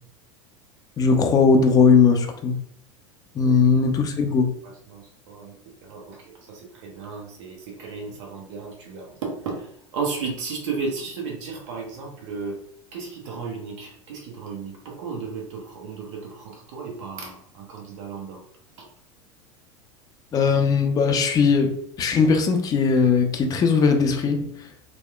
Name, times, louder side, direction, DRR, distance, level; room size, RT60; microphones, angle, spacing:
voice 1, 1.0-2.6 3.4-4.5 20.3-24.5, left 5 dB, 25° left, 5 dB, 0.4 m, -19 dB
voice 2, 4.3-12.6 12.9-18.4 18.8-18.9, right 5 dB, 65° right, 0 dB, 0.7 m, -34 dB
2.8 x 2.0 x 2.2 m, 0.68 s
figure-of-eight pair, 80°, 17 cm